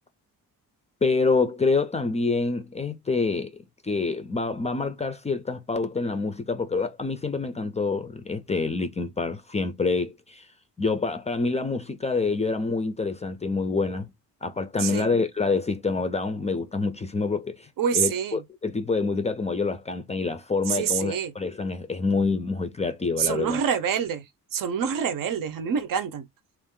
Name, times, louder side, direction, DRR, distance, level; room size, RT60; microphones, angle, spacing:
voice 1, 1.0-3.5 3.8-10.5 10.8-14.1 14.4-23.6, left 4 dB, 20° left, 0.4 m, -27 dB
voice 2, 17.8-18.4 20.7-21.3 23.2-24.2 24.5-26.3, right 7 dB, 65° right, 0.8 m, -26 dB
3.6 x 2.4 x 3.6 m
cardioid pair, 150°, 35 cm